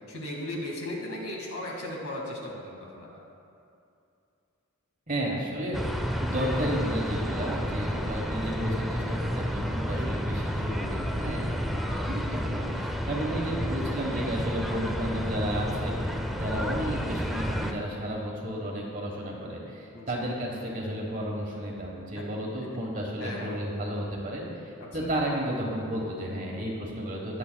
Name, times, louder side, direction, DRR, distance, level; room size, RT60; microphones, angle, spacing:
voice 1, 0.1-3.2 9.9-10.2 19.9-20.2 22.2-22.3 23.2-23.6 25.0-25.1, left 1 dB, 70° left, -1 dB, 1.7 m, -37 dB
voice 2, 5.1-27.4, equal, 35° right, -2 dB, 1.2 m, -32 dB
sound 1, 5.7-17.7, equal, ahead, 0.3 m, -31 dB
20.0 x 7.0 x 2.2 m, 2.6 s
head